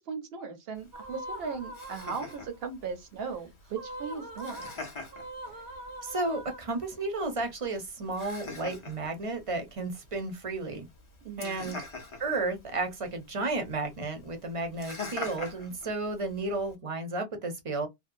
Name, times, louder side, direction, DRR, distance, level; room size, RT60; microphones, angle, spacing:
voice 1, 0.0-4.6 11.2-11.7, right 5 dB, 65° right, 1.0 m, -38 dB
Laughter, 0.8-16.8, left 3 dB, 35° left, 0.6 m, -45 dB
sound 1, 0.9-2.6 3.7-7.1, right 1 dB, 85° right, 1.3 m, -43 dB
voice 2, 6.0-10.9 11.4-11.8 12.2-17.9, right 2 dB, 35° right, 0.6 m, -33 dB
2.7 x 2.1 x 2.5 m
omnidirectional pair, 1.1 m